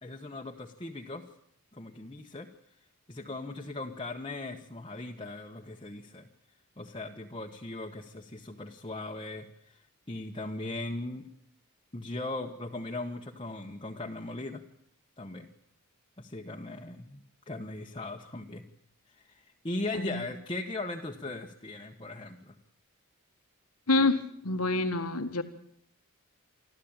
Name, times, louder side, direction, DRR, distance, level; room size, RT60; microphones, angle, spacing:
voice 1, 0.0-1.2 1.7-2.5 3.1-6.3 6.8-9.8 10.1-11.3 11.9-14.6 15.2-15.5 16.2-17.2 17.5-18.6 19.3-22.5, left 2 dB, 25° left, 1 dB, 1.3 m, -38 dB
voice 2, 23.9-25.4, left 2 dB, 80° left, 8 dB, 1.7 m, -27 dB
26.0 x 14.5 x 8.9 m, 0.69 s
head